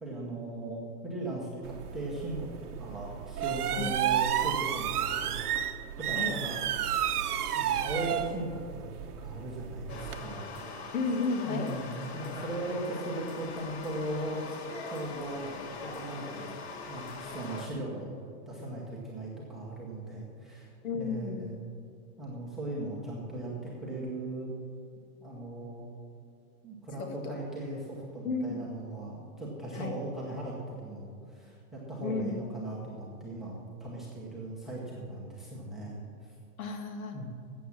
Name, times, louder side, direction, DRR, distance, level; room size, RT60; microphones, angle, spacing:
voice 1, 0.0-2.5 2.8-5.5 6.0-6.6 7.5-10.8 11.4-15.5 15.8-16.6 16.9-18.1 18.5-21.6 22.2-24.5 25.2-25.9 26.6-36.0 37.1-37.3, right 2 dB, ahead, -5 dB, 0.9 m, -38 dB
sound 1, 1.6-10.2, right 10 dB, 90° right, 1.0 m, -32 dB
sound 2, 9.9-17.7, left 4 dB, 45° left, 1.5 m, -42 dB
voice 2, 10.9-11.7 20.8-21.4 27.0-27.4 28.2-28.6 29.7-29.9 32.0-32.4 36.6-37.2, left 4 dB, 65° left, 5 dB, 2.1 m, -32 dB
12.5 x 8.3 x 7.2 m, 2.4 s
supercardioid pair, 180°, 44 cm